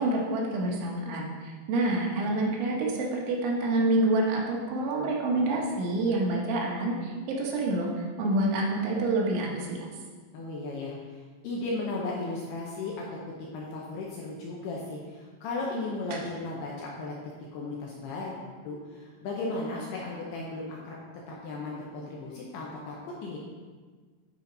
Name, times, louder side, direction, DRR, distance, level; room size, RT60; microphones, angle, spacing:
voice 1, 0.0-9.9 16.1-16.2, right 2 dB, 75° right, -2 dB, 3.5 m, -27 dB
voice 2, 10.3-18.4 18.6-21.0 21.3-23.4, left 2 dB, 75° left, -3 dB, 2.5 m, -36 dB
11.5 x 5.0 x 3.9 m, 1.5 s
omnidirectional pair, 5.6 m